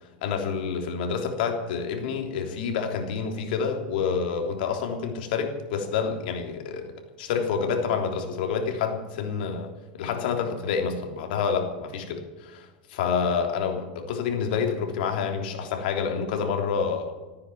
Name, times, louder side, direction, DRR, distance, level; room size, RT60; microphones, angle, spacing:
voice 1, 0.2-6.9 7.2-17.1, left 6 dB, 75° left, 4 dB, 3.4 m, -28 dB
15.0 x 9.6 x 9.4 m, 1.2 s
supercardioid pair, 130°, 5 cm